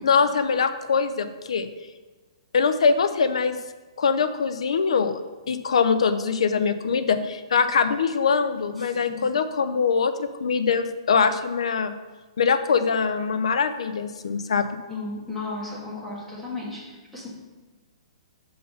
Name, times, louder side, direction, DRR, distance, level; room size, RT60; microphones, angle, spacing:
voice 1, 0.0-1.7 2.5-3.6 4.0-5.2 5.5-11.9 12.4-14.7, left 5 dB, 80° left, 10 dB, 0.5 m, -23 dB
voice 2, 8.8-9.3 14.9-17.3, left 3 dB, ahead, -7 dB, 1.5 m, -35 dB
5.5 x 3.9 x 5.5 m, 1.3 s
hypercardioid pair, 155°, 3 cm